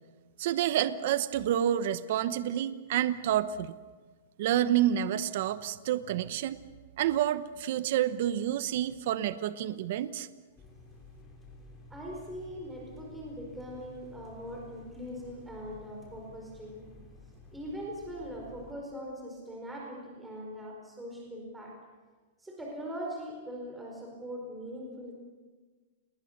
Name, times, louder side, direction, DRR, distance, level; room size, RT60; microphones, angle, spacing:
voice 1, 0.4-3.8 4.4-6.6 7.0-10.3, right 11 dB, 60° right, 13 dB, 1.0 m, -29 dB
sound 1, 10.6-18.7, left 3 dB, 15° left, 6.1 m, -52 dB
voice 2, 11.9-16.9 17.5-21.8 22.4-25.1, equal, 5° right, -1 dB, 4.7 m, -41 dB
28.5 x 21.0 x 6.7 m, 1.4 s
hypercardioid pair, 150°, 0 cm